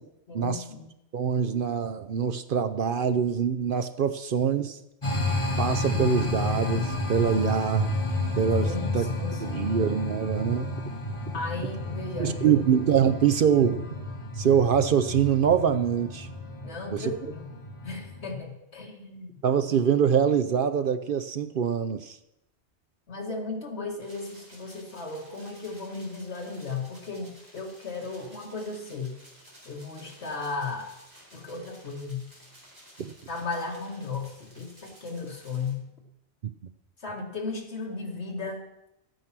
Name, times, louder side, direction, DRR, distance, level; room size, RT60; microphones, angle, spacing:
voice 1, 0.3-0.9 8.6-9.7 11.3-12.6 16.6-17.5 17.8-19.4 23.1-29.1 29.7-30.9 31.3-32.3 33.3-35.9 37.0-38.9, left 3 dB, 70° left, 1 dB, 2.3 m, -35 dB
voice 2, 1.1-4.8 5.6-8.0 8.4-9.1 9.4-10.7 12.2-13.9 14.4-16.3 16.9-17.1 19.4-22.2 33.0-33.1 36.4-36.5, right 7 dB, 60° right, 11 dB, 0.7 m, -24 dB
sound 1, 5.0-18.3, left 2 dB, 25° left, 1.6 m, -31 dB
sound 2, 24.0-35.7, equal, 20° right, 4.1 m, -54 dB
13.0 x 9.3 x 6.0 m, 0.86 s
omnidirectional pair, 1.1 m